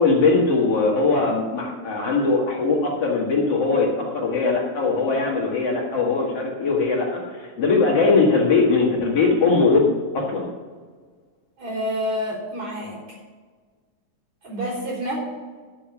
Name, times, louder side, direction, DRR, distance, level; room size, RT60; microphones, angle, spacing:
voice 1, 0.0-9.8 10.1-10.5, left 3 dB, 50° left, -2 dB, 2.7 m, -20 dB
voice 2, 11.6-13.2 14.4-15.2, equal, 40° right, -6 dB, 4.5 m, -28 dB
12.5 x 6.9 x 5.9 m, 1.5 s
omnidirectional pair, 4.0 m